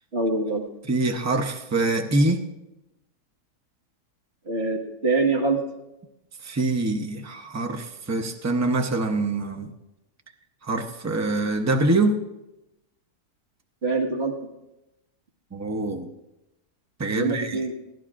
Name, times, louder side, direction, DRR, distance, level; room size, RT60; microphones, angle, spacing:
voice 1, 0.1-0.6 4.5-5.6 13.8-14.5 17.1-17.8, right 3 dB, 40° right, 0 dB, 1.9 m, -24 dB
voice 2, 0.9-2.4 6.4-9.7 10.6-12.2 15.5-16.1 17.0-17.6, right 2 dB, 20° right, 5 dB, 0.4 m, -24 dB
21.5 x 15.5 x 2.5 m, 0.94 s
omnidirectional pair, 1.7 m